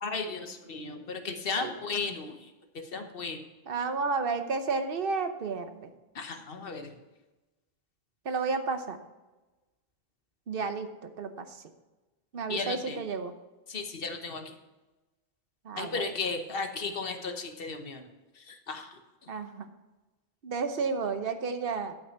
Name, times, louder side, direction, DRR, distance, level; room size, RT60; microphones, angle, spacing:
voice 1, 0.0-2.5 2.7-3.4 6.1-7.0 12.5-13.0 13.7-14.5 15.8-18.1 18.4-19.0, left 4 dB, 60° left, 6 dB, 1.2 m, -35 dB
voice 2, 3.7-5.9 8.2-9.0 10.5-11.5 12.3-13.3 15.7-16.1 19.3-19.7 20.4-21.9, right 4 dB, 60° right, 9 dB, 1.0 m, -32 dB
11.5 x 5.9 x 5.8 m, 1.1 s
omnidirectional pair, 1.1 m